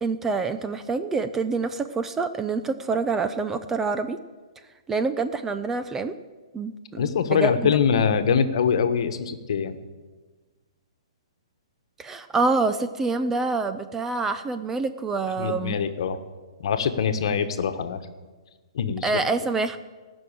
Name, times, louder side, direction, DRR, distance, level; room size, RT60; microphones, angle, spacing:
voice 1, 0.0-4.2 4.9-6.1 6.5-7.8 12.0-15.8 19.0-19.8, right 4 dB, 10° right, 9 dB, 0.4 m, -26 dB
voice 2, 7.0-9.8 15.4-16.2 16.6-18.0 18.7-19.1, left 7 dB, 60° left, 9 dB, 1.3 m, -23 dB
18.0 x 6.2 x 8.8 m, 1.3 s
hypercardioid pair, 155°, 3 cm